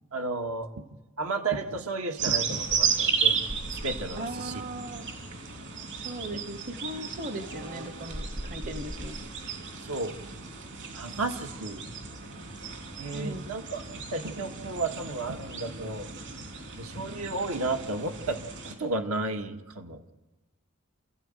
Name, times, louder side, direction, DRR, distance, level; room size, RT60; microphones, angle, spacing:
voice 1, 0.1-0.9 1.2-3.4 3.8-4.5 6.3-6.4 9.8-10.1 10.9-11.8 13.0-13.8 14.1-16.1 16.8-18.4 18.6-20.0, right 3 dB, 80° right, 5 dB, 1.9 m, -33 dB
sound 1, 2.2-18.7, right 6 dB, 55° right, 3.4 m, -34 dB
voice 2, 4.2-5.1 5.9-9.2 13.1-13.5, right 1 dB, 40° right, 9 dB, 1.1 m, -38 dB
29.5 x 14.5 x 9.0 m, 1.1 s
head